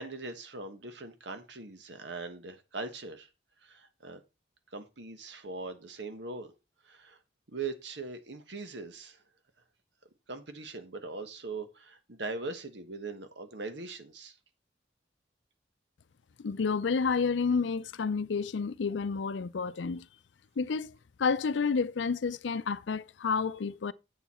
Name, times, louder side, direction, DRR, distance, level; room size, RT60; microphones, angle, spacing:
voice 1, 0.0-3.3 3.6-4.2 4.7-6.5 6.8-7.2 7.5-9.2 10.3-14.4, right 3 dB, 80° right, 1.3 m, -41 dB
voice 2, 16.4-20.1 20.6-20.9 21.2-23.9, left 5 dB, 90° left, 0.5 m, -30 dB
8.0 x 7.0 x 4.3 m
head